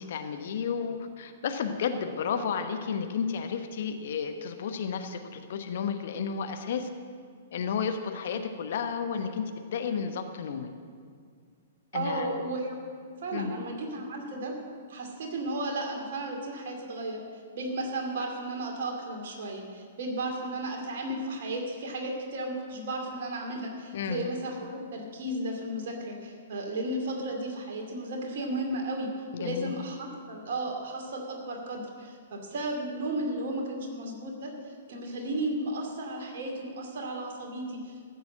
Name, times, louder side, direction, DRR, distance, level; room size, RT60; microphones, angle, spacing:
voice 1, 0.0-6.9 7.5-10.7 11.9-12.3 13.3-13.5 23.9-24.2 29.3-29.7, left 6 dB, 55° left, 7 dB, 1.1 m, -32 dB
voice 2, 11.9-14.5 14.9-17.2 17.5-29.1 29.4-34.5 34.9-38.0, right 1 dB, 55° right, 1 dB, 2.5 m, -34 dB
14.0 x 7.0 x 7.6 m, 2.1 s
figure-of-eight pair, 110°, 0 cm